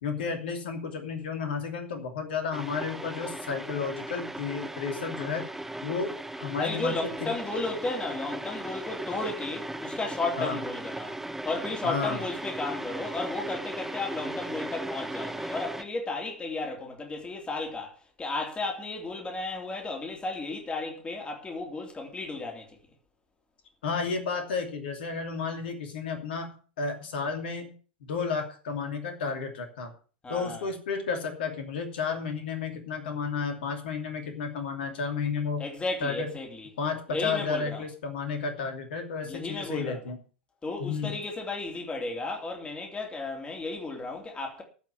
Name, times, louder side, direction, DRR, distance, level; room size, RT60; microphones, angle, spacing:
voice 1, 0.0-5.5 5.8-6.2 6.4-7.3 10.4-10.6 11.8-12.2 23.8-27.7 28.0-29.9 30.3-35.7 36.0-36.3 36.8-40.2 40.8-41.2, left 5 dB, 65° left, 2.8 m, -32 dB
sound 1, 2.5-15.8, right 1 dB, 5° right, 1.2 m, -37 dB
voice 2, 6.5-11.1 11.4-17.9 18.2-22.8 30.2-30.7 35.6-36.7 37.1-37.8 39.2-40.0 40.6-44.6, left 3 dB, 20° left, 3.4 m, -34 dB
15.0 x 5.9 x 7.4 m
figure-of-eight pair, 85°, 6 cm